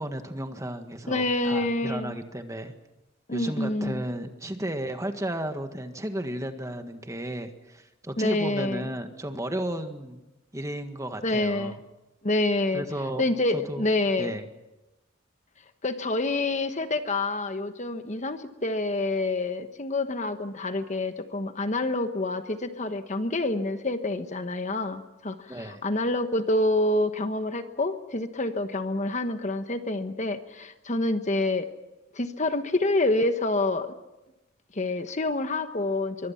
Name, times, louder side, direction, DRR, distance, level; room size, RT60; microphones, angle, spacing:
voice 1, 0.0-2.7 3.3-10.2 10.5-11.8 12.7-13.2 13.5-13.9 14.2-14.5 25.5-25.8, right 1 dB, 15° right, 6 dB, 1.7 m, -33 dB
voice 2, 1.1-2.2 3.3-4.0 8.2-8.9 11.2-11.8 12.2-12.8 13.2-14.4 15.8-31.7 32.1-33.9 34.7-36.3, left 2 dB, 40° left, 8 dB, 1.2 m, -27 dB
25.5 x 23.5 x 5.9 m, 1.0 s
head